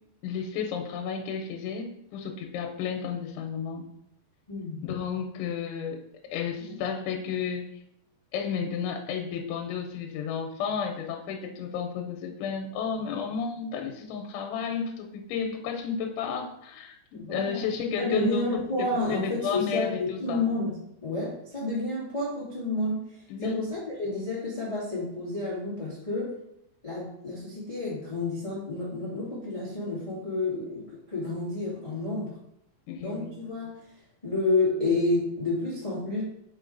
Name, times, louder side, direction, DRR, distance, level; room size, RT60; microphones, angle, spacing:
voice 1, 0.2-3.8 4.8-6.0 6.3-7.6 8.3-20.4 23.3-23.6 32.9-33.3, left 6 dB, 90° left, 3 dB, 3.1 m, -32 dB
voice 2, 4.5-4.8 6.6-6.8 17.1-17.7 18.0-26.4 26.8-32.4 33.0-33.9 34.2-36.2, left 2 dB, 40° left, -8 dB, 0.5 m, -30 dB
5.5 x 5.2 x 3.8 m, 0.77 s
omnidirectional pair, 5.2 m